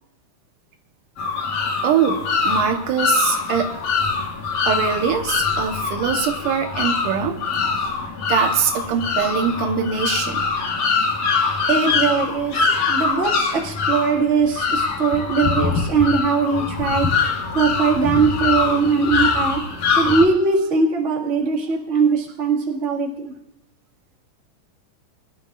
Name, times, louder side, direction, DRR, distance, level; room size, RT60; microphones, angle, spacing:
sound 1, 1.2-20.2, left 5 dB, 75° left, 3.5 m, -23 dB
voice 1, 1.8-3.7 4.7-7.4 8.3-10.5, right 7 dB, 80° right, 5 dB, 2.6 m, -22 dB
voice 2, 11.7-17.1 17.5-19.6 20.0-23.3, right 5 dB, 30° right, -2 dB, 1.7 m, -20 dB
23.0 x 12.0 x 2.5 m, 0.88 s
omnidirectional pair, 3.7 m